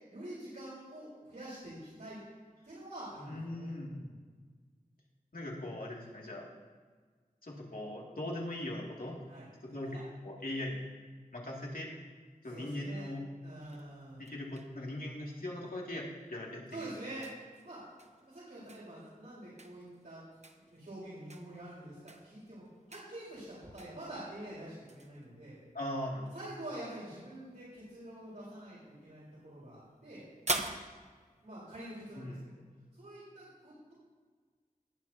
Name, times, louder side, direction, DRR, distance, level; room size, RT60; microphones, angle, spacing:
voice 1, 0.1-2.2 2.6-4.2 9.3-9.5 9.8-10.1 12.5-13.1 13.4-14.3 16.7-17.3 17.6-17.8 18.2-20.2 20.7-25.6 26.3-30.2 31.4-32.6 32.9-33.9, right 1 dB, 85° right, -9 dB, 4.4 m, -46 dB
voice 2, 3.3-4.0 5.3-6.4 7.4-9.2 9.6-10.0 10.2-10.9 11.3-11.9 12.4-13.2 14.2-16.9 25.7-26.3 32.1-32.4, left 1 dB, 75° left, -4 dB, 2.7 m, -40 dB
sound 1, 13.6-32.4, right 2 dB, 50° right, 1.0 m, -47 dB
19.5 x 10.5 x 2.9 m, 1.5 s
wide cardioid pair, 50°, 15 cm